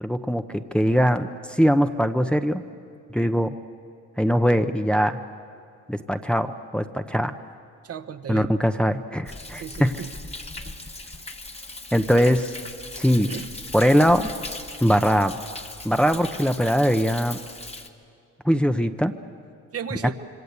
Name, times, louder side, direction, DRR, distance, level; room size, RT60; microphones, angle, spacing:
voice 1, 0.0-2.6 3.1-3.6 4.2-5.2 5.9-7.3 8.3-9.9 11.9-12.5 13.0-13.3 13.7-14.3 14.8-15.4 15.8-17.4 18.4-19.1, equal, 5° left, 7 dB, 0.9 m, -21 dB
voice 2, 7.8-8.5 9.5-10.1 10.6-10.7 13.2-13.5 15.5-15.6 19.7-20.1, right 7 dB, 50° right, 9 dB, 1.3 m, -35 dB
Thunder, 9.3-17.9, left 2 dB, 20° left, 1.6 m, -38 dB
26.5 x 24.0 x 8.3 m, 2.4 s
cardioid pair, 90°, 30 cm